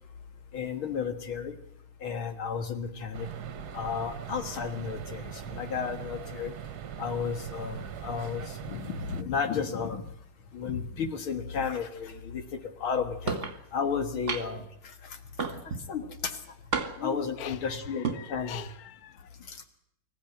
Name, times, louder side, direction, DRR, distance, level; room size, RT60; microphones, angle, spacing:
voice 1, 0.5-1.6 2.0-3.3 3.7-6.5 7.0-10.1 10.5-13.4 13.7-15.2 15.9-16.4 17.0-18.6 19.5-19.6, left 6 dB, 70° left, 7 dB, 2.5 m, -33 dB
sound 1, 3.1-9.2, right 9 dB, 55° right, 1.4 m, -41 dB
sound 2, 13.3-13.6 14.3-14.7 15.4-15.9 16.7-17.2 17.9-18.2, right 4 dB, 35° right, 1.9 m, -31 dB
voice 2, 17.4-19.3, left 6 dB, 50° left, 11 dB, 1.6 m, -42 dB
25.5 x 14.5 x 9.1 m, 0.73 s
omnidirectional pair, 2.4 m